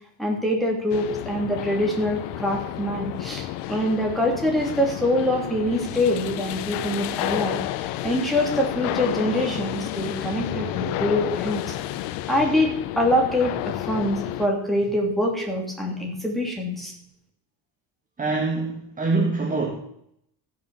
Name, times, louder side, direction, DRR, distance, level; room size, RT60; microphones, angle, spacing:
voice 1, 0.2-7.6 8.0-11.7 12.3-16.9, left 1 dB, ahead, -2 dB, 2.9 m, -24 dB
sound 1, 0.9-14.5, left 14 dB, 90° left, 0.8 m, -31 dB
voice 2, 18.2-19.7, right 3 dB, 20° right, -1 dB, 1.7 m, -24 dB
14.5 x 6.5 x 7.1 m, 0.73 s
cardioid pair, 155°, 41 cm